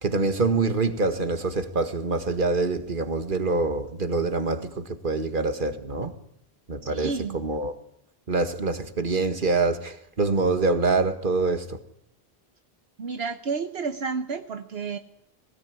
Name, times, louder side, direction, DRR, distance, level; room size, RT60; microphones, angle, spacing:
voice 1, 0.0-6.1 6.7-7.7 8.3-11.8, right 3 dB, 50° right, 1.9 m, -25 dB
voice 2, 6.8-7.4 13.0-15.0, right 5 dB, 75° right, 1.3 m, -31 dB
22.0 x 17.5 x 9.6 m
omnidirectional pair, 1.1 m